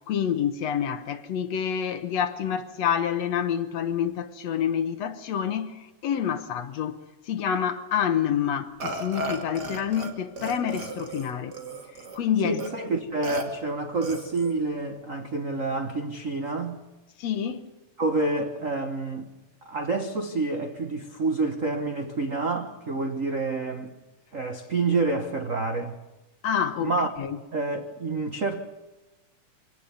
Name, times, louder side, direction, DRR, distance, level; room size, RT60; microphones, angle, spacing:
voice 1, 0.1-7.0 7.3-11.6 12.1-12.6 17.2-17.7 26.4-26.9 27.2-27.4, left 8 dB, 65° left, 2.1 m, -27 dB
Burping eructation, 8.8-10.1 10.4-12.2 12.6-12.7 13.2-13.4 14.0-14.6, right 2 dB, 35° right, 2.8 m, -35 dB
voice 2, 12.4-16.8 18.0-19.3 19.6-23.9 24.3-26.0 26.8-27.1 27.5-28.6, right 3 dB, 80° right, 0.7 m, -28 dB
25.0 x 18.0 x 7.1 m
omnidirectional pair, 3.6 m